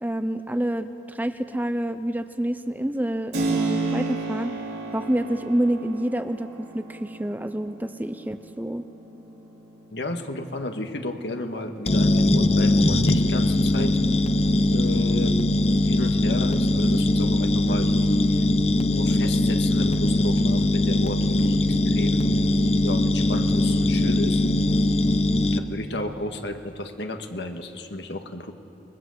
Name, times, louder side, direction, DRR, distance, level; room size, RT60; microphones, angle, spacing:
voice 1, 0.0-4.6 4.9-8.8, right 1 dB, 10° right, 10 dB, 0.6 m, -28 dB
Keyboard (musical), 3.3-11.9, right 3 dB, 70° right, 3.6 m, -33 dB
voice 2, 9.9-14.0 14.7-15.4 15.8-18.4 18.9-22.2 22.8-24.4 25.5-28.5, left 1 dB, 75° left, 5 dB, 1.8 m, -33 dB
sound 1, 11.9-25.6, left 1 dB, 35° left, 0.9 m, -21 dB
28.0 x 21.5 x 7.9 m, 3.0 s
head